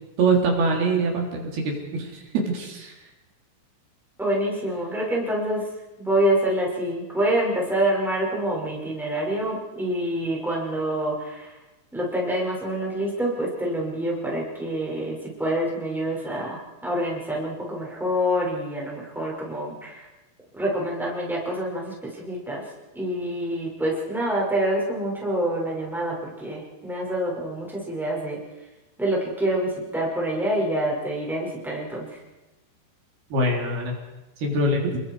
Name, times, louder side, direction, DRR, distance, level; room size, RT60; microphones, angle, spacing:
voice 1, 0.2-3.0 33.3-33.9 34.4-35.0, right 2 dB, 80° right, 0 dB, 5.4 m, -24 dB
voice 2, 4.2-5.7 6.0-11.6 11.9-20.1 20.5-22.7 22.9-28.4 29.0-32.2, right 1 dB, ahead, -4 dB, 5.7 m, -26 dB
30.0 x 21.5 x 4.8 m, 1.0 s
omnidirectional pair, 4.4 m